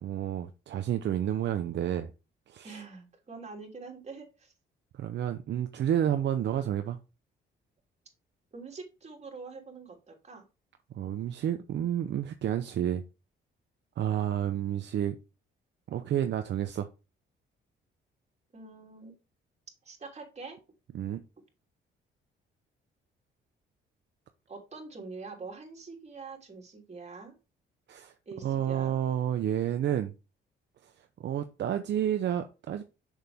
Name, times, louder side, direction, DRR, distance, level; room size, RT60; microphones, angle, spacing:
voice 1, 0.0-2.1 2.5-2.8 4.9-7.0 10.9-13.0 14.0-15.2 15.9-16.9 20.9-21.2 27.9-28.1 28.4-30.1 30.8-30.9 31.2-32.8, right 10 dB, 60° right, 0.8 m, -30 dB
voice 2, 2.6-4.5 8.5-10.4 18.5-19.1 19.8-20.6 24.5-27.4 28.2-29.0, right 4 dB, 35° right, 3.3 m, -45 dB
6.6 x 6.5 x 3.5 m
cardioid pair, 90°, 20 cm